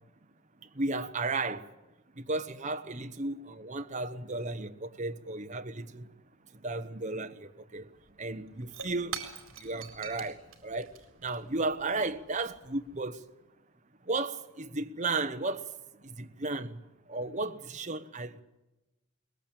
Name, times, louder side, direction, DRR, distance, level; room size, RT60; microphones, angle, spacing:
voice 1, 0.7-1.7 2.2-6.1 6.6-7.9 8.2-9.2 9.6-10.9 11.2-13.2 14.1-15.7 16.0-16.8 17.1-18.4, right 3 dB, 35° right, 1.1 m, -34 dB
Shatter / Crushing, 7.8-7.9 8.1-13.0, right 7 dB, 65° right, 4.2 m, -45 dB
22.5 x 20.0 x 8.8 m
head